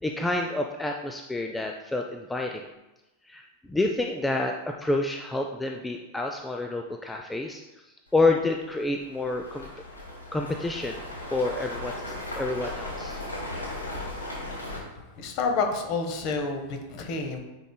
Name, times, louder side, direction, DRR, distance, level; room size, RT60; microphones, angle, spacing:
voice 1, 0.0-2.7 3.3-7.6 8.1-9.7 10.3-11.0 11.3-13.2, left 2 dB, 10° left, 2 dB, 0.4 m, -28 dB
sound 1, 8.1-8.2 8.7-14.8, left 1 dB, 80° left, 1.3 m, -37 dB
voice 2, 15.2-17.4, left 4 dB, 40° left, 4 dB, 1.0 m, -29 dB
8.9 x 4.8 x 2.2 m, 1.0 s
figure-of-eight pair, 90°, 0 cm